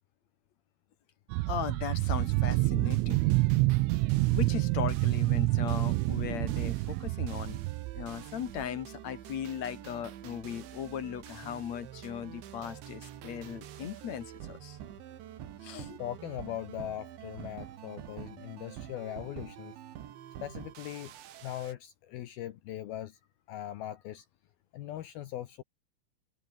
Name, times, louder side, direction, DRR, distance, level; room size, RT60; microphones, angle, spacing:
sound 1, 1.3-8.1 8.6-8.7, right 22 dB, 90° right, 3.3 m, -28 dB
voice 1, 1.5-3.2 4.3-7.6 7.9-14.8 15.6-16.0, left 9 dB, 60° left, 1.9 m, -38 dB
sound 2, 2.0-21.7, right 11 dB, 70° right, 4.3 m, -47 dB
voice 2, 15.7-19.7 20.4-21.1 21.4-23.2 23.5-24.2 24.7-25.6, left 12 dB, 75° left, 2.3 m, -40 dB
omnidirectional pair, 5.6 m